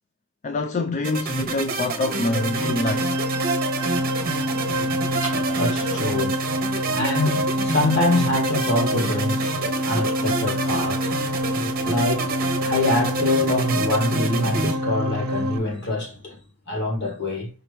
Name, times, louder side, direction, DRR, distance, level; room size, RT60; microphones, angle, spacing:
voice 1, 0.4-3.2, left 2 dB, 35° left, 0.3 m, -25 dB
sound 1, 1.0-14.7, right 3 dB, 40° right, 0.8 m, -29 dB
sound 2, 2.0-15.6, equal, 85° right, 0.6 m, -26 dB
voice 2, 3.9-16.4 16.7-17.5, left 2 dB, 50° left, 1.7 m, -26 dB
5.0 x 2.9 x 3.3 m
head